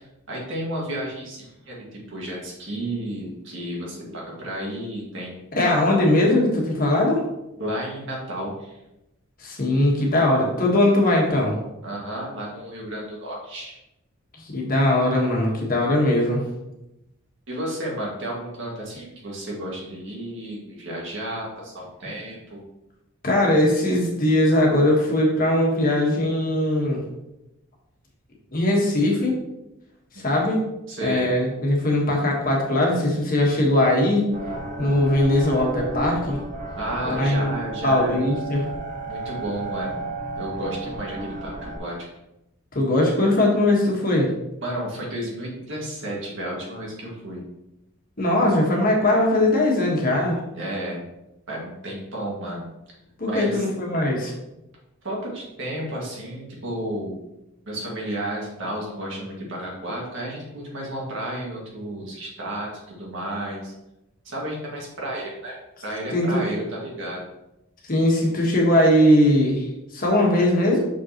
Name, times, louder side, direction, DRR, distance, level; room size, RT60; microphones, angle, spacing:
voice 1, 0.3-1.8 2.1-5.7 7.6-8.8 11.8-13.8 17.5-22.6 30.1-30.2 30.9-31.3 36.8-38.2 39.1-40.0 40.4-42.1 44.6-47.4 50.5-51.0 51.5-52.7 53.3-53.7 55.0-57.2 57.7-63.7 64.3-67.2, right 1 dB, 65° right, -3 dB, 1.9 m, -32 dB
voice 2, 5.5-7.2 9.4-11.5 14.4-16.4 23.2-27.0 28.5-29.3 30.2-30.6 31.0-34.2 34.8-36.4 37.0-37.6 37.8-38.6 42.7-44.3 48.2-50.4 53.2-54.3 66.1-66.4 67.9-69.7 69.9-70.9, left 1 dB, 45° left, -1 dB, 1.4 m, -20 dB
sound 1, 34.3-41.8, right 2 dB, 35° right, 1.2 m, -33 dB
6.2 x 5.3 x 3.0 m, 0.91 s
head